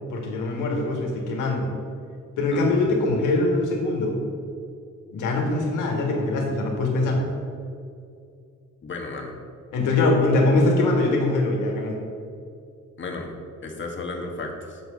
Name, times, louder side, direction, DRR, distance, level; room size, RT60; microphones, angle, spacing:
voice 1, 0.1-1.7 2.4-4.2 5.1-7.3 9.7-12.0, left 2 dB, 90° left, 0 dB, 1.8 m, -22 dB
voice 2, 2.5-2.8 8.8-9.4 13.0-13.3 13.6-14.8, left 3 dB, 40° left, 2 dB, 1.4 m, -34 dB
6.8 x 6.4 x 5.2 m, 2.4 s
cardioid pair, 90°, 30 cm